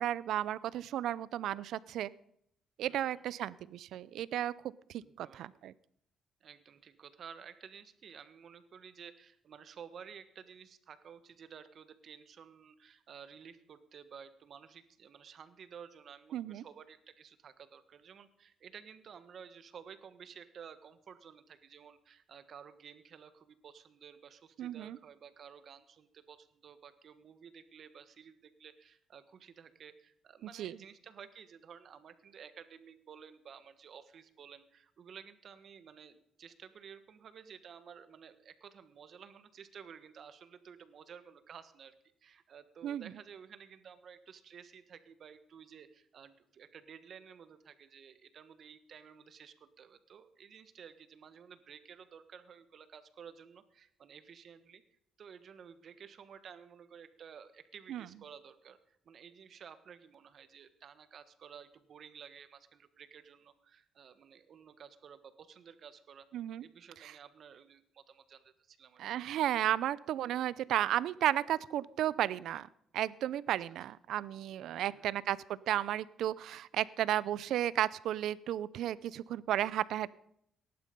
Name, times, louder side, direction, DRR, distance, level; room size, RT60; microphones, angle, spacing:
voice 1, 0.0-2.1 2.8-4.5 5.2-5.7 16.3-16.6 24.6-25.0 30.6-30.8 42.8-43.1 57.9-58.0 66.3-66.6 67.0-67.1 69.0-72.7 72.9-75.4 75.7-80.1, right 12 dB, 80° right, 20 dB, 0.5 m, -33 dB
voice 2, 2.9-3.2 5.0-5.6 6.4-41.9 42.2-54.8 55.2-66.3 66.6-69.0 74.7-75.1, right 7 dB, 60° right, 12 dB, 1.4 m, -53 dB
18.0 x 11.0 x 5.3 m, 0.72 s
cardioid pair, 90°, 0 cm